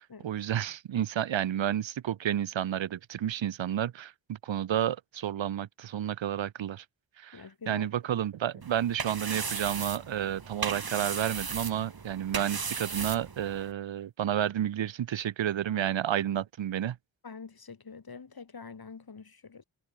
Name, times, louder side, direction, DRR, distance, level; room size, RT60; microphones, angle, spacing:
voice 1, 0.0-6.8 7.2-17.0, right 10 dB, 80° right, 0.9 m, -31 dB
voice 2, 7.3-7.9 15.7-15.8 17.2-19.6, left 5 dB, 55° left, 3.1 m, -46 dB
sound 1, 8.6-13.7, right 5 dB, 55° right, 2.9 m, -36 dB
cardioid pair, 55°, 45 cm